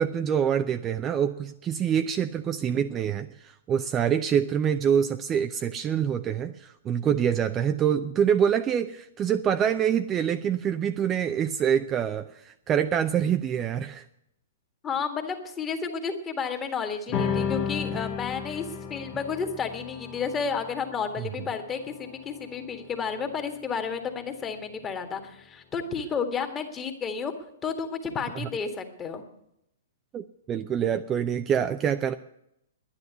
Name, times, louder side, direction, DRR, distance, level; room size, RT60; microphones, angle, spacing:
voice 1, 0.0-14.0 21.2-21.3 28.3-28.5 30.1-32.1, right 8 dB, 20° right, 9 dB, 0.5 m, -26 dB
voice 2, 14.8-27.3 27.6-29.2, left 6 dB, 20° left, 6 dB, 1.8 m, -32 dB
sound 1, 17.1-23.9, left 6 dB, 35° left, 1.4 m, -34 dB
11.0 x 10.0 x 8.1 m, 0.77 s
figure-of-eight pair, 115°, 0 cm